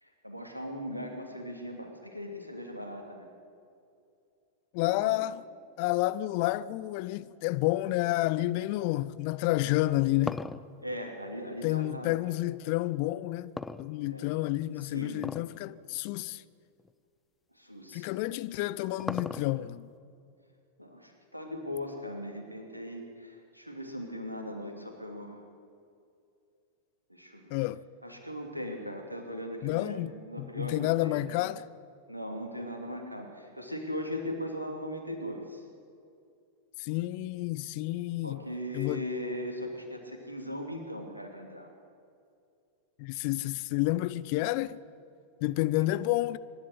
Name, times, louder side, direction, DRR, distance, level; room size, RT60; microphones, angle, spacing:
voice 1, 0.0-3.3 4.8-5.2 10.8-12.1 14.1-14.3 14.8-15.2 17.5-18.1 20.8-25.4 27.1-27.5 28.0-31.2 32.1-35.6 38.2-41.7 45.8-45.9, equal, 90° right, 2.9 m, -39 dB
voice 2, 4.7-5.4 5.8-10.4 11.6-13.5 13.8-16.4 17.9-19.9 27.5-27.8 29.6-30.1 30.4-31.6 36.8-38.4 38.7-39.0 43.0-44.8 45.4-46.4, left 17 dB, 45° left, 0.6 m, -30 dB
sound 1, 9.7-12.2 13.6-14.4 15.2-15.6 15.9-16.0 16.8-16.9 18.3-19.8, left 3 dB, 10° left, 0.6 m, -38 dB
24.5 x 11.5 x 9.9 m
figure-of-eight pair, 90°, 0 cm